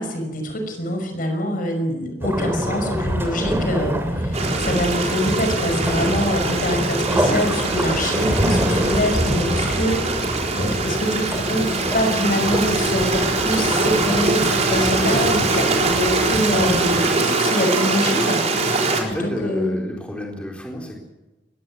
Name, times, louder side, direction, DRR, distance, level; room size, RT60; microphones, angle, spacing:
voice 1, 0.0-18.7 19.1-19.8, equal, 50° left, 5 dB, 5.6 m, -25 dB
sound 1, 2.2-17.0, equal, 15° right, 3.2 m, -26 dB
Stream, 4.3-19.0, right 3 dB, 35° right, 4.3 m, -23 dB
voice 2, 18.9-21.0, left 1 dB, 5° left, -1 dB, 4.3 m, -30 dB
20.5 x 17.5 x 9.7 m, 1.1 s
head